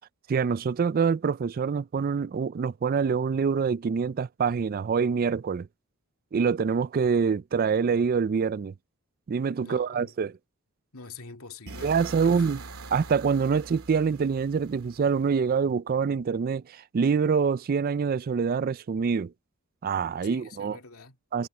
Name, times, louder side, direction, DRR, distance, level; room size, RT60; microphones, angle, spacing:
voice 1, 0.3-5.7 6.3-8.7 9.3-10.3 11.8-12.6 12.9-19.3 19.8-20.8 21.3-21.5, right 5 dB, 40° right, 0.3 m, -25 dB
voice 2, 9.6-10.1 10.9-12.5 20.2-21.2, left 4 dB, 80° left, 2.4 m, -46 dB
sound 1, 11.7-15.6, right 3 dB, 75° right, 2.2 m, -43 dB
head